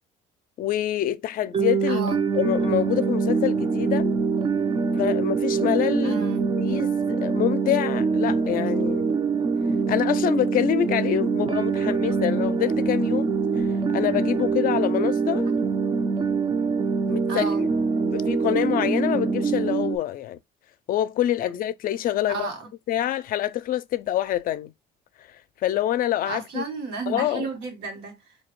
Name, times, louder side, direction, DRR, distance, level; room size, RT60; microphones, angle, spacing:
voice 1, 0.6-2.0 2.3-4.1 5.0-9.1 9.9-15.5 17.1-17.7 18.0-20.4 20.9-22.5 22.9-24.7 25.3-26.6 27.1-27.5, left 12 dB, 55° left, 0.4 m, -26 dB
sound 1, 1.5-20.0, right 5 dB, 30° right, 0.5 m, -24 dB
voice 2, 6.0-6.4 15.4-15.6 17.3-17.6 22.3-22.7 26.3-28.4, right 4 dB, 85° right, 1.5 m, -32 dB
4.1 x 2.7 x 3.1 m
cardioid pair, 110°, 17 cm